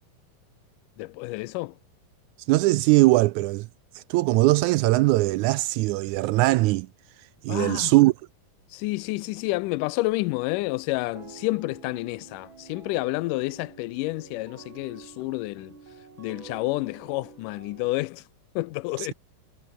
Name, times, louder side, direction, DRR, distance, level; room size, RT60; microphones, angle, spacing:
voice 1, 1.0-1.8 7.5-7.9 8.7-15.7 16.2-18.2 18.6-19.1, left 21 dB, 85° left, 2.1 m, -29 dB
voice 2, 2.5-3.7 3.9-6.9 7.4-8.1 19.0-19.1, right 19 dB, 80° right, 1.8 m, -20 dB
sound 1, 11.1-18.0, right 5 dB, 40° right, 3.3 m, -48 dB
omnidirectional pair, 3.7 m